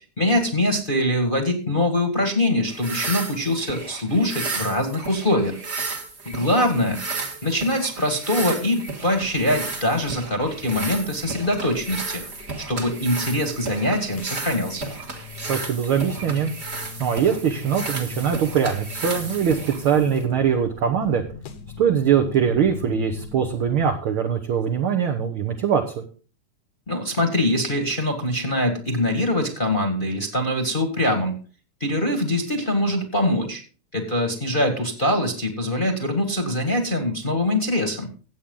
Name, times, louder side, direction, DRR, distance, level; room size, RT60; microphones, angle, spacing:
voice 1, 0.2-5.5 6.2-7.0 7.4-12.2 12.7-14.8 26.9-31.4 31.8-33.6 33.9-38.1, left 1 dB, 25° left, 4 dB, 1.3 m, -23 dB
sound 1, 2.7-20.3, right 3 dB, 30° right, 1.3 m, -33 dB
sound 2, 9.1-23.9, left 6 dB, 75° left, 2.6 m, -41 dB
voice 2, 15.5-16.5 17.0-21.2 21.8-26.1, right 7 dB, 60° right, 3 dB, 1.5 m, -22 dB
15.0 x 8.4 x 3.8 m, 0.39 s
omnidirectional pair, 3.4 m